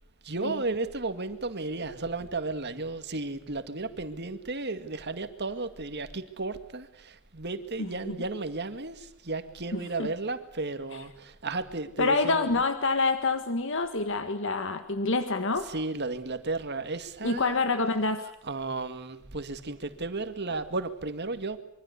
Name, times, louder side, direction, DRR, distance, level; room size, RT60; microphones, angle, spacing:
voice 1, 0.2-12.5 15.7-17.6 18.4-21.6, right 3 dB, 50° right, 9 dB, 2.1 m, -34 dB
voice 2, 7.8-8.2 9.7-10.1 12.0-15.7 17.2-18.2, left 3 dB, 60° left, 9 dB, 1.7 m, -27 dB
26.0 x 24.0 x 8.4 m, 0.77 s
head